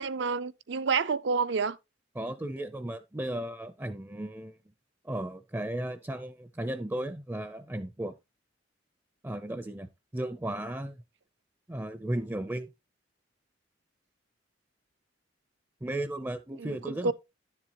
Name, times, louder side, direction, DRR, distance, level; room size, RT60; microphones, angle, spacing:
voice 1, 0.0-1.8 16.6-16.8 17.0-17.1, right 5 dB, 70° right, 0.5 m, -28 dB
voice 2, 2.2-4.6 5.0-8.2 9.2-11.0 11.7-12.7 15.8-17.1, right 1 dB, 15° right, 0.5 m, -35 dB
10.5 x 7.3 x 2.9 m
head